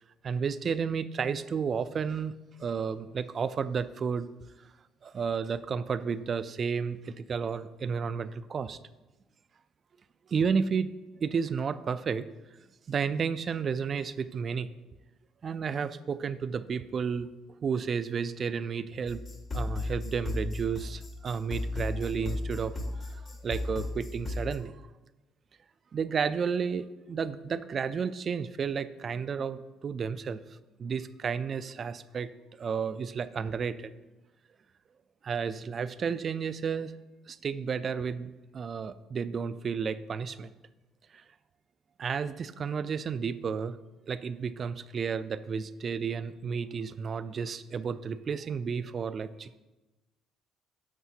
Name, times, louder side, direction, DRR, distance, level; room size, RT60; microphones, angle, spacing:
voice 1, 0.2-2.3 2.6-4.3 5.0-8.8 10.3-10.9 11.2-12.3 12.9-14.7 15.4-17.3 17.6-19.2 19.5-24.7 25.9-30.4 30.8-32.3 32.6-33.9 35.2-36.9 37.3-40.5 41.1-41.2 42.0-43.8 44.1-49.6, right 6 dB, 40° right, 14 dB, 0.3 m, -32 dB
sound 1, 19.1-24.6, left 2 dB, 35° left, 1.0 m, -35 dB
9.6 x 7.2 x 2.8 m, 1.1 s
cardioid pair, 110°, 0 cm